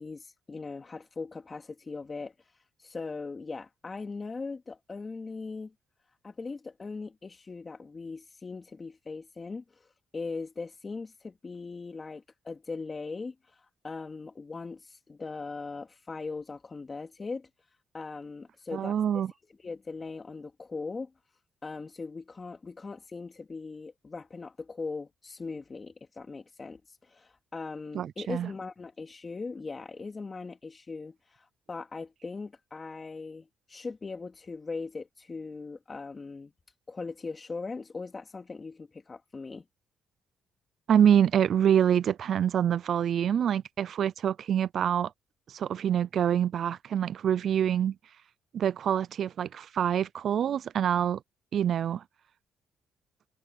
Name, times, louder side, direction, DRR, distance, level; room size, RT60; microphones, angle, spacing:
voice 1, 0.0-2.3 2.8-5.7 6.2-9.9 10.1-17.5 17.9-19.0 19.2-19.3 19.6-21.1 21.6-36.5 36.9-39.6, left 4 dB, 30° left, 2.7 m, -40 dB
voice 2, 18.7-19.3 27.9-28.5 40.9-45.1 45.5-47.9 48.5-51.2 51.5-52.0, right 9 dB, 60° right, 0.4 m, -26 dB
cardioid pair, 90°, 0 cm